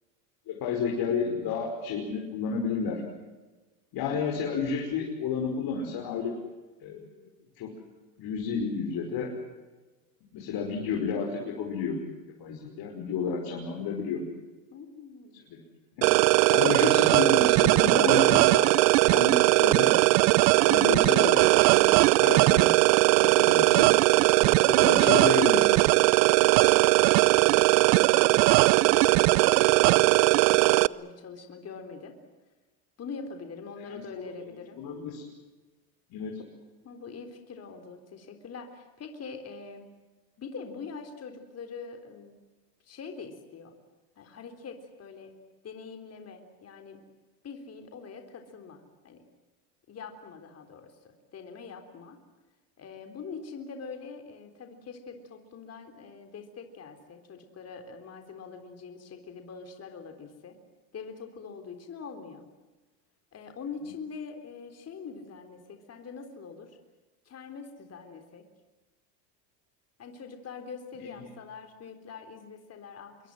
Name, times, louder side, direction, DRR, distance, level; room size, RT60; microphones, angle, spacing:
voice 1, 0.5-3.0 3.9-6.3 6.8-7.0 7.6-7.7 8.2-9.3 10.3-12.0 12.4-14.2 15.5-15.6 16.0-16.1 16.5-18.7 19.1-20.0 20.6-22.7 23.2-23.9 24.4-25.6 33.9-34.2 34.8-35.3 36.1-36.4, left 5 dB, 50° left, 0 dB, 5.7 m, -31 dB
voice 2, 14.7-15.4 26.3-28.6 28.8-32.1 33.0-34.8 36.8-39.9 40.4-42.4 42.8-43.7 44.2-45.4 45.6-47.0 47.4-49.3 49.9-52.2 52.8-60.6 60.9-62.4 63.3-66.8 67.3-68.5 70.0-73.3, left 5 dB, 30° left, 6 dB, 3.8 m, -44 dB
sound 1, 16.0-30.9, right 21 dB, 75° right, 0.8 m, -20 dB
26.5 x 23.0 x 7.7 m, 1.2 s
supercardioid pair, 120°, 49 cm